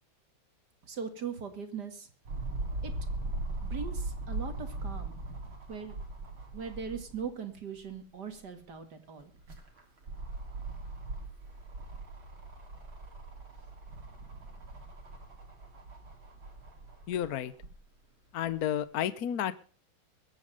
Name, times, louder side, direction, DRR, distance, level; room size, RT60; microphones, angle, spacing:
voice 1, 0.8-2.1 2.8-2.9 3.6-5.9 6.5-9.3 13.9-14.8, right 6 dB, 55° right, 8 dB, 2.6 m, -41 dB
sound 1, 2.3-7.3 7.8-7.9 9.2-17.7 18.5-18.6, right 2 dB, 80° right, 3.9 m, -40 dB
voice 2, 17.1-17.5 18.3-19.6, left 10 dB, 60° left, 15 dB, 1.1 m, -31 dB
22.5 x 8.8 x 5.1 m, 0.38 s
omnidirectional pair, 2.2 m